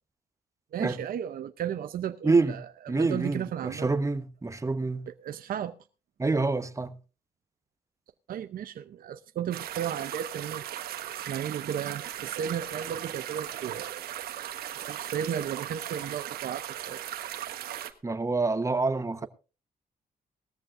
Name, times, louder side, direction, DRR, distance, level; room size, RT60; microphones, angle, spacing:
voice 1, 0.7-3.9 5.1-5.7 8.3-10.6 11.1-14.0 14.9-17.0, right 9 dB, 70° right, 0.7 m, -34 dB
voice 2, 2.2-2.6 2.9-5.1 6.2-7.0 18.0-19.3, right 3 dB, 20° right, 1.1 m, -27 dB
sound 1, 9.5-17.9, right 11 dB, 85° right, 1.3 m, -38 dB
18.5 x 14.0 x 2.6 m
cardioid pair, 80°, 16 cm